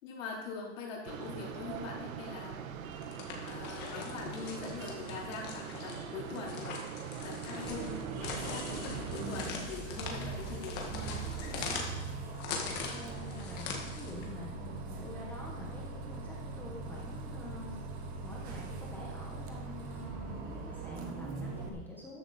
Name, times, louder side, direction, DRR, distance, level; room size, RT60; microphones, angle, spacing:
voice 1, 0.0-2.6 3.0-3.1 3.4-6.7 7.2-11.2, left 4 dB, 70° left, -2 dB, 3.8 m, -43 dB
sound 1, 1.1-9.5, right 8 dB, 85° right, 1.3 m, -42 dB
sound 2, 2.9-14.3, left 5 dB, 25° left, 1.7 m, -42 dB
Bus, 7.6-21.7, right 4 dB, 20° right, 1.0 m, -41 dB
voice 2, 12.9-13.7 14.0-17.8 18.2-22.2, left 2 dB, 5° left, -3 dB, 1.2 m, -47 dB
13.5 x 10.5 x 4.2 m, 1.1 s
supercardioid pair, 175°, 40 cm